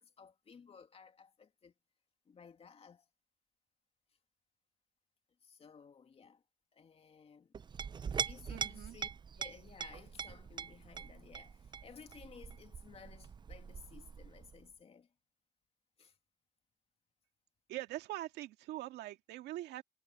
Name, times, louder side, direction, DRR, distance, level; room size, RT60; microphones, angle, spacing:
voice 1, 0.0-1.7 2.3-3.1 5.4-6.4 6.7-7.5 8.2-9.1 9.4-15.1 16.0-16.2, left 6 dB, 35° left, 2.5 m, -57 dB
Chink clink, 7.5-14.7, right 6 dB, 25° right, 0.5 m, -43 dB
voice 2, 8.5-9.0 17.7-19.8, right 15 dB, 80° right, 2.1 m, -43 dB
cardioid pair, 110°, 17 cm